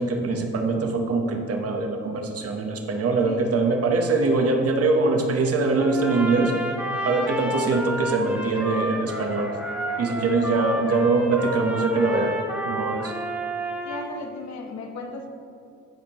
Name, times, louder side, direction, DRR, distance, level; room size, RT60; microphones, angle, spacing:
voice 1, 0.0-6.5 7.0-9.5 10.0-12.3 12.6-13.1, right 3 dB, 50° right, 3 dB, 1.2 m, -23 dB
voice 2, 3.2-3.5 7.5-8.1 10.5-10.7 13.8-15.3, left 3 dB, 65° left, 3 dB, 1.2 m, -37 dB
Trumpet, 5.7-14.1, right 1 dB, 5° right, 1.4 m, -31 dB
15.0 x 5.2 x 3.0 m, 2.6 s
cardioid pair, 90°, 30 cm